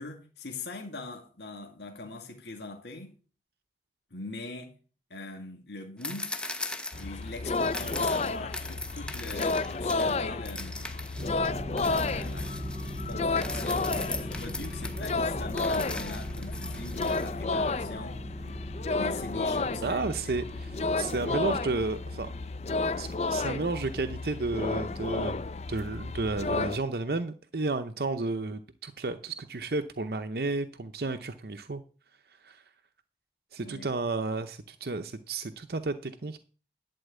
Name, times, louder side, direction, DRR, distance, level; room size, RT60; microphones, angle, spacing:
voice 1, 0.0-3.1 4.1-4.8 5.1-6.3 7.0-10.9 11.8-12.5 13.1-18.6 18.9-20.1 33.6-33.9, left 2 dB, 80° left, 2.0 m, -42 dB
sound 1, 6.0-10.2 10.4-17.3, left 2 dB, 5° left, 0.9 m, -40 dB
sound 2, 6.9-26.8, left 3 dB, 35° left, 0.5 m, -32 dB
sound 3, 11.2-22.4, right 1 dB, 20° right, 0.6 m, -41 dB
voice 2, 19.8-22.3 23.0-25.4 25.7-31.8 32.4-32.6 33.5-36.4, right 3 dB, 60° right, 0.7 m, -32 dB
11.5 x 4.6 x 8.0 m
head